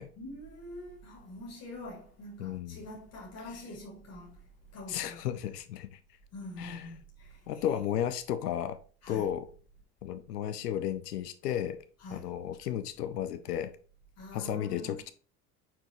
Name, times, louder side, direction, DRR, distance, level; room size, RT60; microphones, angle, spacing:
voice 1, 0.2-5.2 6.3-7.8 9.0-9.3 12.0-12.3 14.2-15.0, left 1 dB, 45° left, 3.3 m, -45 dB
voice 2, 2.4-2.8 4.9-6.0 6.6-6.8 7.5-8.8 9.1-9.5 10.0-11.8 12.1-13.7 14.3-15.1, left 10 dB, 80° left, 0.7 m, -33 dB
7.5 x 4.6 x 3.0 m
hypercardioid pair, 75°, 47 cm